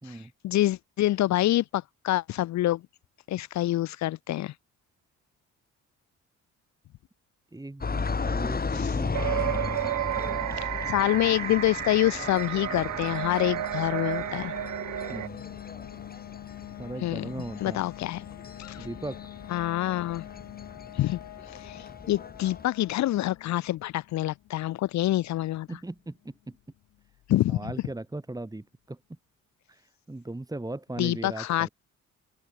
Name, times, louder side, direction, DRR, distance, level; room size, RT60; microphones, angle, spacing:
voice 1, 0.0-2.8 3.3-4.5 8.7-8.9 10.6-14.5 17.0-17.2 17.6-18.3 18.6-18.9 19.5-20.2 20.9-21.2 21.5-25.7 27.3-27.6 31.0-31.7, left 14 dB, 65° left, 0.6 m, -27 dB
voice 2, 7.5-9.1 15.1-15.4 16.8-17.8 18.8-19.2 25.7-26.6 27.3-29.0 29.7-31.7, right 2 dB, 10° right, 3.5 m, -38 dB
sound 1, 7.8-22.7, left 4 dB, 30° left, 6.3 m, -36 dB
sound 2, 9.1-15.3, right 15 dB, 75° right, 0.9 m, -32 dB
sound 3, 13.0-27.6, left 14 dB, 85° left, 7.7 m, -45 dB
open air
cardioid pair, 90°, 30 cm